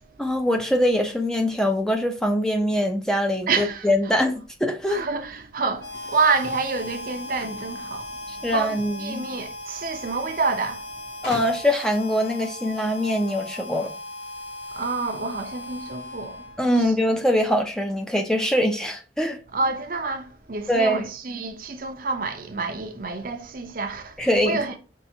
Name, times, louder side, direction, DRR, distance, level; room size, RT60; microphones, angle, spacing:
voice 1, 0.2-5.0 8.3-9.2 11.2-13.9 16.6-19.4 20.7-21.1 24.2-24.6, equal, 5° left, 0.5 m, -23 dB
voice 2, 3.5-3.9 4.9-10.9 14.7-16.4 16.7-16.9 19.5-24.8, right 4 dB, 50° right, 0.6 m, -28 dB
Harmonica, 5.8-16.8, left 1 dB, 75° left, 0.8 m, -38 dB
sound 1, 7.3-8.7 9.8-9.9 10.2-10.3 11.2-11.9, left 1 dB, 60° left, 2.7 m, -39 dB
5.5 x 3.3 x 2.7 m
head